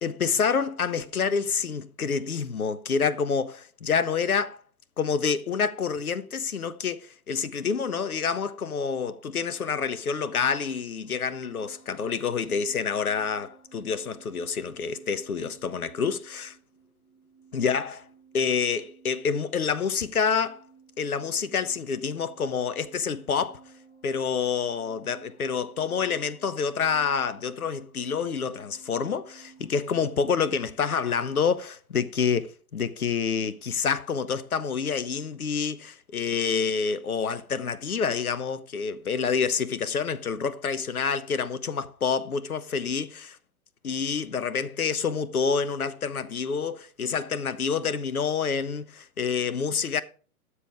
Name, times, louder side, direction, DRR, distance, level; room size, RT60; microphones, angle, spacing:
voice 1, 0.0-4.6 5.0-16.5 17.5-18.0 18.3-20.6 21.0-23.6 24.0-43.4 43.8-50.0, left 6 dB, 75° left, 1.0 m, -28 dB
sound 1, 11.0-30.1, right 5 dB, 40° left, 4.9 m, -55 dB
13.0 x 7.2 x 4.7 m
figure-of-eight pair, 115°, 44 cm